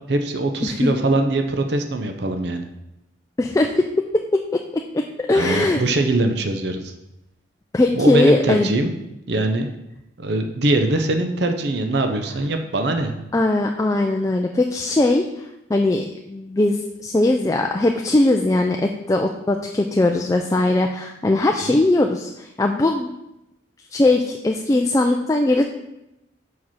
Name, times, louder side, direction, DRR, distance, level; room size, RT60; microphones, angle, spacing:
voice 1, 0.1-2.6 5.4-6.9 7.9-8.9 9.3-9.7 10.2-13.1 21.6-21.7, right 2 dB, 65° right, 6 dB, 0.6 m, -22 dB
voice 2, 0.6-0.9 3.4-3.8 4.1-5.8 7.7-8.7 13.3-23.1 23.9-25.6, left 2 dB, 15° left, 3 dB, 0.3 m, -20 dB
6.0 x 5.0 x 5.5 m, 0.89 s
head